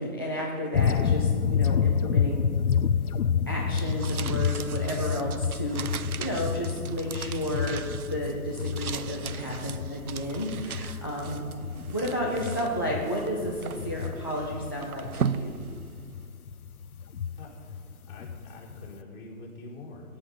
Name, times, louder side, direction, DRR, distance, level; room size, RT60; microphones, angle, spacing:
voice 1, 0.0-2.5 3.5-11.5 11.9-15.5, equal, 15° left, -2 dB, 0.6 m, -32 dB
sound 1, 0.7-19.0, left 7 dB, 70° left, 0.8 m, -29 dB
sound 2, 3.7-16.3, right 7 dB, 70° right, 0.7 m, -38 dB
voice 2, 17.4-20.2, left 2 dB, 40° left, -5 dB, 4.6 m, -45 dB
18.0 x 10.5 x 5.5 m, 2.1 s
hypercardioid pair, 160°, 46 cm